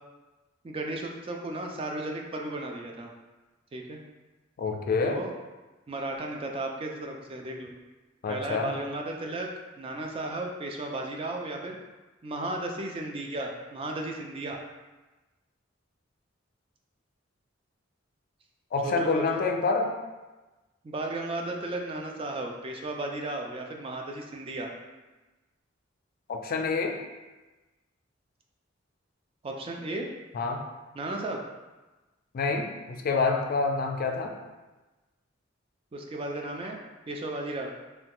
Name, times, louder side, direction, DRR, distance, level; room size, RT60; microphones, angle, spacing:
voice 1, 0.6-3.1 3.7-4.0 5.0-5.3 5.9-7.7 8.3-9.5 9.8-11.8 12.2-14.6 18.8-19.4 20.8-24.7 29.4-30.1 30.9-31.4 35.9-36.8 37.1-37.7, right 2 dB, 30° right, 1 dB, 0.4 m, -34 dB
voice 2, 4.6-5.2 8.2-8.7 18.7-19.9 26.3-27.0 30.3-30.6 32.3-34.3, left 4 dB, 50° left, 3 dB, 0.3 m, -27 dB
3.2 x 2.2 x 2.9 m, 1.1 s
head